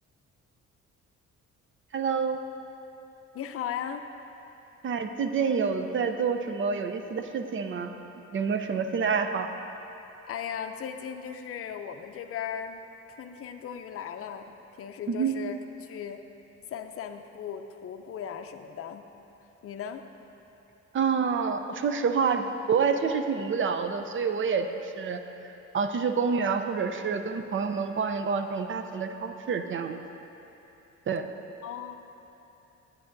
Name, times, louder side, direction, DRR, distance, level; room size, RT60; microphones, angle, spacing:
voice 1, 1.9-2.4 4.8-7.9 8.3-9.5 15.1-15.4 20.9-30.0 31.1-31.3, right 5 dB, 40° right, 7 dB, 0.5 m, -28 dB
voice 2, 3.3-4.0 10.3-14.5 14.8-15.5 15.8-16.2 16.7-19.1 19.6-20.0 31.6-31.9, left 8 dB, 50° left, 7 dB, 0.5 m, -37 dB
11.0 x 8.3 x 2.6 m, 3.0 s
cardioid pair, 90°, 30 cm